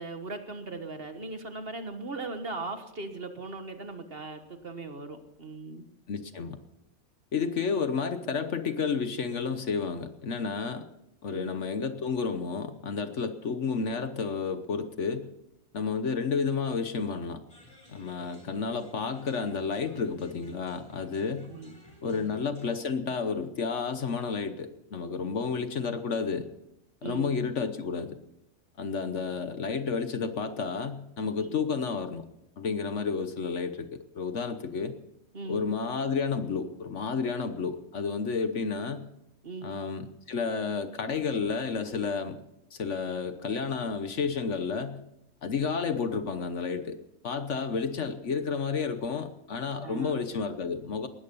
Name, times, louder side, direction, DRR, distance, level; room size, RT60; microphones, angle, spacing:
voice 1, 0.0-5.9 11.3-11.5 21.4-22.3 27.0-27.4 31.4-31.6 35.3-35.7 39.4-39.8 49.8-50.2, right 3 dB, 40° right, 7 dB, 1.6 m, -39 dB
voice 2, 6.1-6.6 7.3-10.9 11.2-15.3 15.7-17.4 17.9-21.5 22.0-26.5 27.0-28.2 28.8-32.2 32.6-34.9 35.5-39.0 39.6-42.4 42.7-45.0 45.4-47.0 47.2-51.1, left 5 dB, 55° left, 10 dB, 1.2 m, -31 dB
sound 1, 17.5-22.8, right 1 dB, 25° left, 7.3 m, -55 dB
19.0 x 13.5 x 5.5 m, 0.85 s
omnidirectional pair, 1.5 m